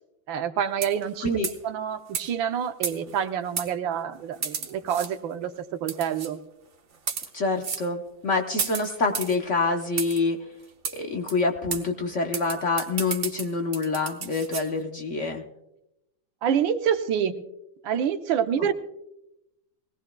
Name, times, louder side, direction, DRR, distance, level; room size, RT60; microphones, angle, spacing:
voice 1, 0.3-1.3 1.6-5.5 5.8-6.4 16.4-17.4 17.8-18.7, right 8 dB, 80° right, 8 dB, 1.6 m, -27 dB
sound 1, 0.7-1.1 1.4-1.7 2.1-2.3 2.8-3.2 3.6-3.7 4.4-5.1 5.9-6.3 6.9-7.3 7.6-7.9 8.6-9.4 10.0-10.2 10.8-11.0 11.3-11.4 11.7-11.8 12.3-14.7, right 6 dB, 45° right, 1.1 m, -32 dB
voice 2, 7.3-10.4 10.9-15.4, left 3 dB, 50° left, 3 dB, 1.0 m, -26 dB
21.0 x 17.5 x 2.2 m, 0.88 s
omnidirectional pair, 2.1 m